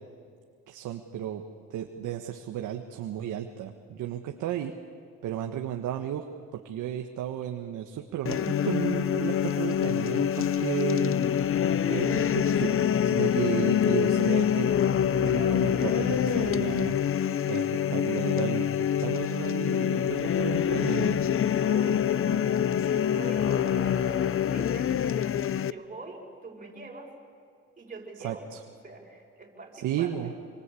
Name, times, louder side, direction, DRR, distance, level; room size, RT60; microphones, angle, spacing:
voice 1, 0.7-1.4 1.7-4.7 5.2-6.3 6.5-11.2 11.8-12.8 13.0-14.8 15.2-17.0 17.5-17.6 17.9-18.7 19.0-21.2 28.2-28.6 29.8-30.3, right 11 dB, 85° right, 4 dB, 1.5 m, -33 dB
sound 1, 8.3-25.7, left 9 dB, 45° left, 0.7 m, -25 dB
voice 2, 15.3-16.6 21.5-24.9 25.5-27.1 27.8-28.5 28.8-30.2, right 3 dB, 25° right, -1 dB, 6.9 m, -44 dB
27.0 x 25.0 x 8.5 m, 2.3 s
cardioid pair, 90°, 30 cm